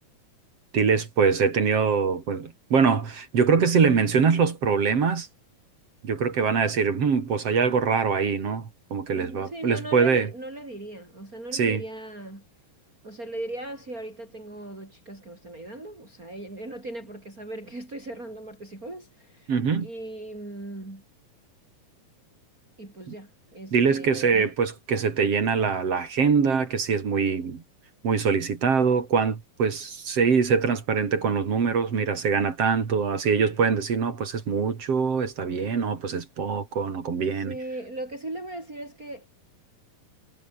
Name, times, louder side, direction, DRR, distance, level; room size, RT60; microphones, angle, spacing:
voice 1, 0.7-5.3 6.0-10.3 11.5-11.8 19.5-19.9 23.7-27.6 28.0-37.5, right 5 dB, 45° right, 3.6 m, -23 dB
voice 2, 9.1-12.4 13.0-19.5 19.8-21.0 22.8-24.5 37.2-39.3, right 1 dB, 20° right, 6.7 m, -38 dB
omnidirectional pair, 4.0 m